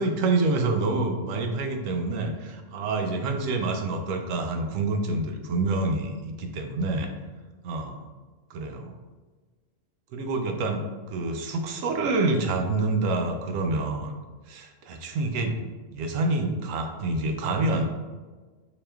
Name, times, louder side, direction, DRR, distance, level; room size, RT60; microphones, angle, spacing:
voice 1, 0.0-7.1 7.6-8.1 8.5-8.9 10.1-14.1 14.5-17.8, right 2 dB, 80° right, 4 dB, 0.9 m, -27 dB
4.8 x 3.0 x 2.2 m, 1.4 s
omnidirectional pair, 1.4 m